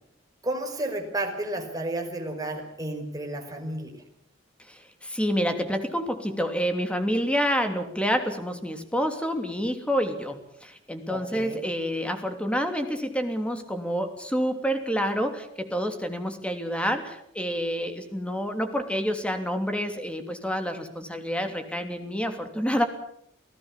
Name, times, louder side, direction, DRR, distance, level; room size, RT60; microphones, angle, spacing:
voice 1, 0.4-3.9 11.1-11.6, right 1 dB, 20° right, 3 dB, 5.2 m, -32 dB
voice 2, 4.7-22.9, equal, 5° left, 6 dB, 3.0 m, -28 dB
29.0 x 17.5 x 7.5 m, 0.69 s
head